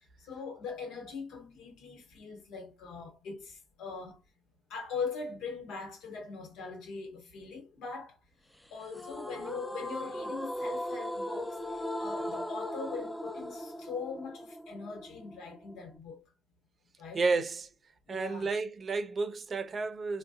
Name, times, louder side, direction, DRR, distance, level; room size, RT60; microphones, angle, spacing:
voice 1, 0.2-4.2 4.7-8.2 8.7-16.2 17.0-17.2 18.1-18.5, left 5 dB, 90° left, 1.1 m, -41 dB
sound 1, 8.9-16.0, equal, 5° left, 0.4 m, -38 dB
voice 2, 17.1-17.7 18.1-20.2, right 4 dB, 45° right, 0.5 m, -31 dB
3.6 x 2.2 x 2.6 m
cardioid pair, 90°, 0 cm